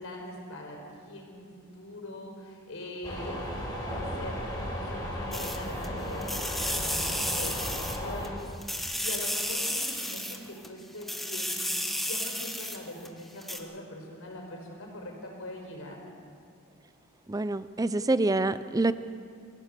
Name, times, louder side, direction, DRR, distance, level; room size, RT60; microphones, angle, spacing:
voice 1, 0.0-16.0, left 1 dB, 70° left, 0 dB, 5.0 m, -42 dB
sound 1, 3.0-8.3, equal, 20° left, 4.8 m, -35 dB
sound 2, 5.3-5.9 6.2-8.3 8.6-10.7 11.0-13.1 13.4-13.6, equal, ahead, 1.2 m, -32 dB
voice 2, 17.3-18.9, right 2 dB, 15° right, 14 dB, 0.5 m, -26 dB
25.5 x 15.5 x 6.8 m, 2.3 s
head